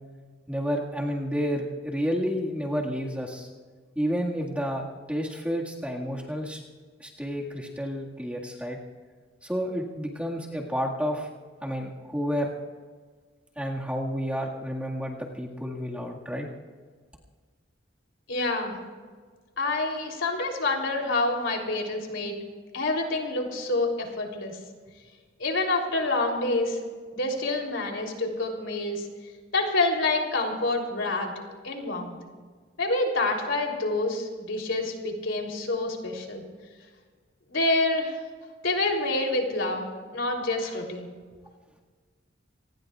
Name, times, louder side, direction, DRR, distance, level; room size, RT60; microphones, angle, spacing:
voice 1, 0.5-3.5 4.0-4.8 5.1-6.6 7.0-8.8 9.4-11.3 11.6-12.5 13.6-16.5, equal, 5° right, -2 dB, 1.8 m, -30 dB
voice 2, 18.3-18.7 19.6-22.4 22.7-24.6 25.4-26.8 27.1-29.1 29.5-31.3 31.6-32.2 32.8-36.4 37.5-38.2 38.6-41.1, left 2 dB, 70° left, 1 dB, 3.3 m, -27 dB
27.5 x 19.5 x 2.4 m, 1.5 s
head